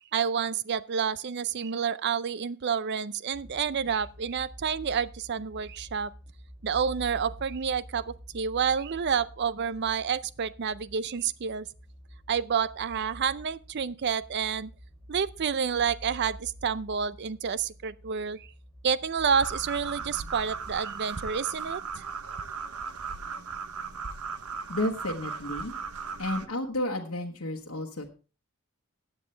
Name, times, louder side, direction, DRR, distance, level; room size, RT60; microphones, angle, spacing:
voice 1, 0.1-6.1 6.6-11.7 12.3-14.7 15.1-18.5 18.8-21.8, right 6 dB, 50° right, 0.5 m, -29 dB
sound 1, 3.3-20.8, equal, 5° left, 3.0 m, -48 dB
sound 2, 19.3-26.4, right 5 dB, 90° right, 0.9 m, -37 dB
voice 2, 24.7-25.7 26.2-28.1, left 1 dB, 65° left, 1.3 m, -32 dB
15.5 x 9.1 x 3.3 m
head